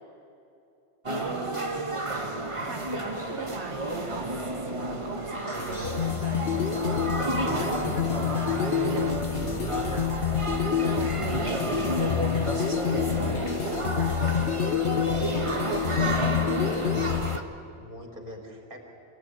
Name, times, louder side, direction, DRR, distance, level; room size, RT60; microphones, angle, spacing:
sound 1, 1.0-17.4, right 1 dB, 30° right, 1.7 m, -31 dB
voice 1, 1.1-2.0 2.6-6.5 8.9-9.2 10.8-14.3 15.7-17.0, right 4 dB, 85° right, 4 dB, 1.5 m, -39 dB
sound 2, 5.4-17.4, left 9 dB, 65° left, 1.2 m, -28 dB
voice 2, 7.2-9.5 9.8-10.3 15.1-16.3 17.7-18.8, equal, 50° right, 2 dB, 4.2 m, -41 dB
sound 3, 7.8-12.6, right 5 dB, 70° right, 1.2 m, -41 dB
27.0 x 17.0 x 9.7 m, 2.8 s
omnidirectional pair, 1.1 m